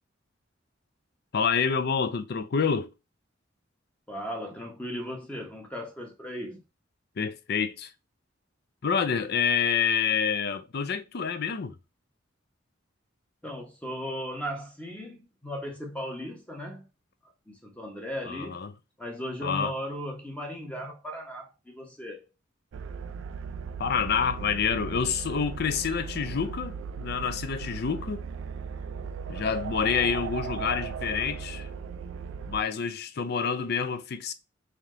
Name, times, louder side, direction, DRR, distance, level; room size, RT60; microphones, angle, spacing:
voice 1, 1.3-2.9 7.2-7.9 8.8-11.8 18.3-18.7 19.4-19.7 23.8-28.3 29.3-31.7 32.5-34.3, left 6 dB, 55° left, 0.5 m, -28 dB
voice 2, 4.1-6.6 13.4-16.9 17.5-18.6 19.0-22.3, equal, 5° left, 0.8 m, -37 dB
sound 1, 22.7-32.6, right 6 dB, 70° right, 0.3 m, -37 dB
3.5 x 2.8 x 3.6 m
head